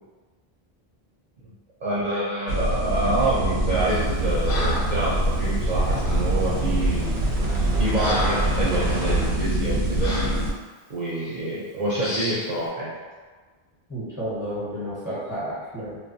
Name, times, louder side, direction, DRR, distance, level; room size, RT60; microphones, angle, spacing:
voice 1, 1.8-7.1 7.8-10.1 10.9-12.9, right 1 dB, 55° right, -8 dB, 0.5 m, -27 dB
sound 1, 2.5-10.5, right 1 dB, 85° right, 0.8 m, -24 dB
Breathing, 3.9-4.1 4.5-5.0 6.0-6.3 7.0-7.1 7.5-8.6 9.0-9.2 10.0-10.4 11.1-11.3 12.0-12.5, left 1 dB, 65° left, 0.8 m, -31 dB
voice 2, 13.9-16.0, equal, 20° left, -12 dB, 1.0 m, -31 dB
2.2 x 2.1 x 2.6 m, 1.4 s
omnidirectional pair, 1.0 m